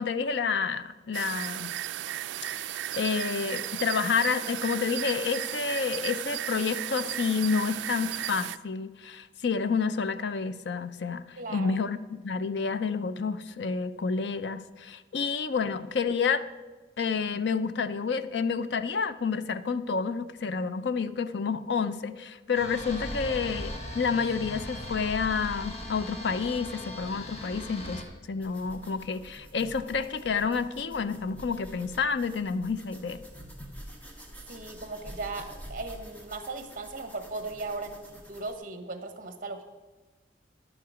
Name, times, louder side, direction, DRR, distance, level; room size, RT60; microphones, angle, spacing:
voice 1, 0.0-1.8 2.5-2.7 2.9-16.4 17.0-28.0 28.3-33.2, left 5 dB, 65° left, 13 dB, 0.5 m, -29 dB
sound 1, 1.1-8.6, right 12 dB, 75° right, 0.3 m, -35 dB
voice 2, 11.4-11.8 23.3-23.4 34.5-39.6, right 3 dB, 45° right, 7 dB, 1.1 m, -37 dB
sound 2, 22.5-28.0, left 1 dB, 35° left, 1.3 m, -38 dB
sound 3, 28.4-38.6, equal, 10° left, 1.1 m, -47 dB
10.5 x 8.7 x 4.9 m, 1.2 s
head